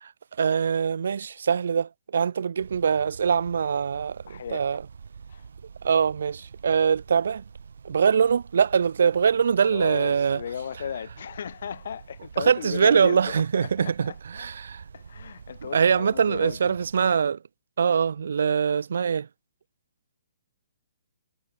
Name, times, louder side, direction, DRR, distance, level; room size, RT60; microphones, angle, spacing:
voice 1, 0.4-4.8 5.8-7.4 7.8-10.4 12.4-14.8 15.7-17.4 17.8-19.3, right 6 dB, 65° right, 0.7 m, -23 dB
sound 1, 2.6-17.2, right 6 dB, 80° right, 5.4 m, -46 dB
voice 2, 4.3-4.8 5.3-5.5 9.6-14.5 14.9-16.8, left 8 dB, 55° left, 7.6 m, -36 dB
hypercardioid pair, 175°, 0 cm